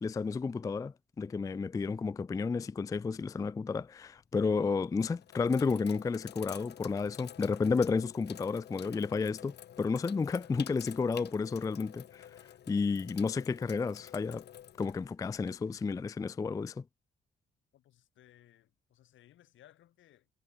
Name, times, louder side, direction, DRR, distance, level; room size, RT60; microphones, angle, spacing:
voice 1, 0.0-14.4 14.8-16.8, left 4 dB, 15° left, 0.3 m, -32 dB
Sink (filling or washing), 3.8-4.2 4.9-15.8, left 10 dB, 60° left, 0.9 m, -50 dB
voice 2, 17.7-20.3, left 13 dB, 75° left, 2.1 m, -62 dB
cardioid pair, 90°, 20 cm